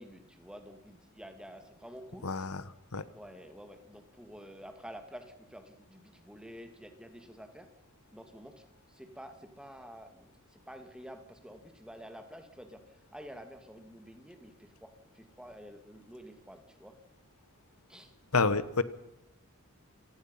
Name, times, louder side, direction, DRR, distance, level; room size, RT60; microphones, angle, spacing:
voice 1, 0.0-2.3 3.1-7.7 8.1-17.0 17.9-18.1, equal, 5° right, 6 dB, 2.6 m, -49 dB
voice 2, 2.2-2.6 2.9-3.0 18.3-18.8, left 4 dB, 90° left, 15 dB, 1.2 m, -28 dB
27.5 x 19.0 x 5.7 m, 0.86 s
head